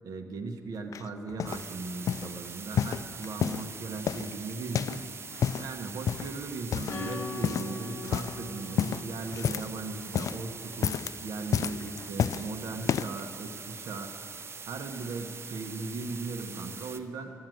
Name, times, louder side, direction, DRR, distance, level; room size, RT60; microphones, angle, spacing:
voice 1, 0.0-5.1 5.6-14.1 14.7-17.3, right 3 dB, 80° right, 4 dB, 1.2 m, -38 dB
sound 1, 0.9-1.7 2.1-2.3 2.7-3.7 4.1-5.0 5.3-5.7 6.1-6.4 6.7-7.1 7.4-7.8 8.0-8.4 8.8-9.8 10.0-10.4 10.7-11.2 11.5-12.5 12.8-13.2 13.9-14.0, left 8 dB, 65° left, 0.3 m, -30 dB
sound 2, 1.5-17.0, right 5 dB, 45° right, 0.7 m, -43 dB
Acoustic guitar / Strum, 6.9-11.1, left 2 dB, 45° left, 1.7 m, -41 dB
13.0 x 9.5 x 9.2 m, 2.8 s
cardioid pair, 110°, 6 cm